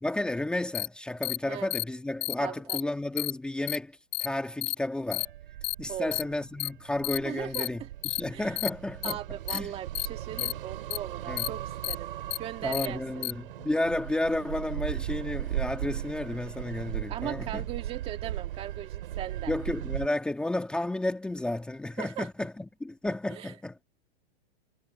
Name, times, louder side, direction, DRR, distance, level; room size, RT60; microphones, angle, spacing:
voice 1, 0.0-5.3 5.8-9.2 9.5-9.7 10.4-10.5 11.3-11.5 12.6-17.6 19.5-23.8, left 1 dB, 5° left, 1.9 m, -32 dB
sound 1, 0.7-0.9 1.2-1.4 1.7-1.8 2.2-2.3 2.7-2.8 3.2-3.3 3.7-3.8 4.1-4.3 4.6-4.7 5.1-5.3 5.6-5.7 6.1-6.2 6.6-6.7 7.0-7.2 7.5-7.7 8.0-8.2 8.6-8.7 9.0-9.1 9.5-9.6 9.9-10.1 10.4-10.5 10.9-11.0 11.4-11.5 11.8-11.9 12.3-12.4 12.7-12.9 13.2-13.3, left 18 dB, 45° left, 2.0 m, -30 dB
voice 2, 2.4-2.8 5.9-6.2 7.2-7.9 8.3-8.6 9.0-12.1 12.4-13.3 17.1-19.5 22.0-22.3 23.3-23.5, right 11 dB, 20° right, 2.0 m, -39 dB
sound 2, 5.2-20.1, right 13 dB, 60° right, 3.4 m, -38 dB
hypercardioid pair, 165°, 31 cm